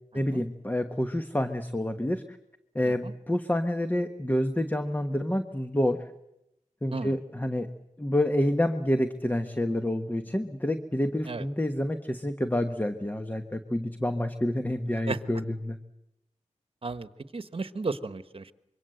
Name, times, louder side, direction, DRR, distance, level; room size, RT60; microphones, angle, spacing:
voice 1, 0.1-2.4 2.7-6.0 6.8-7.7 8.0-15.8, left 1 dB, 15° left, 8 dB, 1.2 m, -28 dB
voice 2, 16.8-18.5, right 3 dB, 45° right, 12 dB, 1.3 m, -34 dB
25.5 x 23.5 x 7.9 m, 0.86 s
wide cardioid pair, 95°, 13 cm